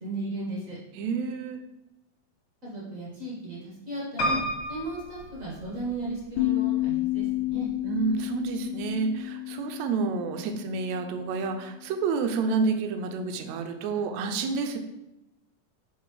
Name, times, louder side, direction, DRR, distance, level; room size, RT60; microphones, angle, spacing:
voice 1, 0.0-0.8 2.6-4.4 4.7-7.7, right 1 dB, 45° right, -5 dB, 1.1 m, -35 dB
voice 2, 0.9-1.6 7.8-14.8, right 4 dB, 75° right, 6 dB, 1.7 m, -29 dB
Piano, 4.2-6.2 6.8-7.5 7.8-7.9 8.1-8.2, equal, 40° left, 2.3 m, -31 dB
sound 1, 6.4-11.5, left 17 dB, 85° left, 2.3 m, -31 dB
7.3 x 3.8 x 4.8 m, 0.91 s
omnidirectional pair, 3.8 m